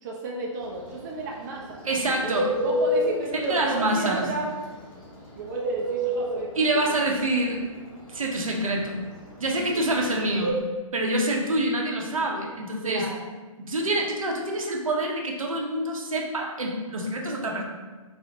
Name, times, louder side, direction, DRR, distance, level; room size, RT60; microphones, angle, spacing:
voice 1, 0.0-2.2 2.6-4.6 5.4-6.9 9.7-9.8 12.8-13.2, right 2 dB, 35° right, -1 dB, 0.4 m, -33 dB
Bird, 0.6-10.5, equal, 35° left, 0.9 m, -28 dB
voice 2, 1.8-2.5 3.3-4.3 6.6-7.6 8.1-9.0 9.4-10.5 10.9-13.1 13.6-17.6, right 1 dB, 75° right, 0 dB, 0.6 m, -26 dB
4.1 x 2.0 x 2.6 m, 1.3 s
figure-of-eight pair, 125°, 18 cm